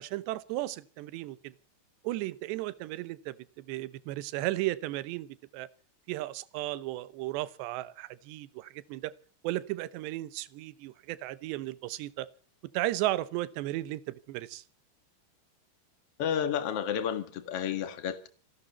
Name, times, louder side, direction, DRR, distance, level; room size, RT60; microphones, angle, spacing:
voice 1, 0.0-1.5 2.0-5.7 6.1-9.1 9.4-12.3 12.7-14.6, right 16 dB, 75° right, 2.8 m, -35 dB
voice 2, 16.2-18.3, left 8 dB, 60° left, 1.5 m, -31 dB
28.5 x 12.0 x 4.2 m
omnidirectional pair, 5.5 m